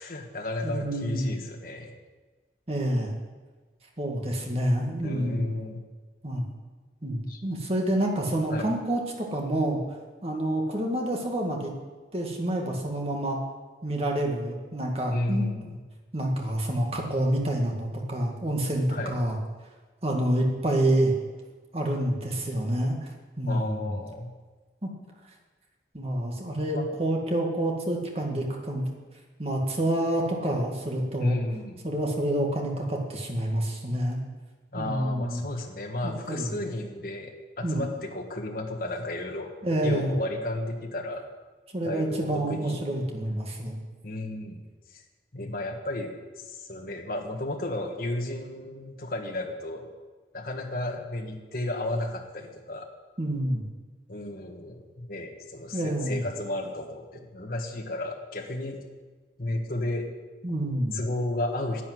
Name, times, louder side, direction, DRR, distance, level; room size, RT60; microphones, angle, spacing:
voice 1, 0.0-1.9 5.0-5.8 7.3-7.4 8.5-8.8 15.1-15.8 18.9-19.2 23.5-24.3 26.7-26.8 31.2-31.8 34.7-39.5 39.8-41.2 41.8-42.8 44.0-45.0 45.3-49.9 50.3-52.9 54.1-58.8 59.4-60.1 60.9-61.8, left 1 dB, 55° left, 2 dB, 1.5 m, -33 dB
voice 2, 0.6-1.3 2.7-3.2 4.0-5.5 6.2-6.4 7.0-9.8 10.2-11.7 12.1-13.4 13.8-15.5 16.1-19.4 20.0-21.1 21.7-23.0 23.4-24.0 24.8-24.9 25.9-28.8 29.4-31.4 31.8-34.2 34.8-35.4 36.0-36.5 37.6-37.9 39.6-40.1 41.7-43.8 53.2-53.7 55.7-56.2 60.4-61.0, right 1 dB, 35° right, 0 dB, 2.1 m, -28 dB
11.0 x 9.1 x 7.8 m, 1.3 s
head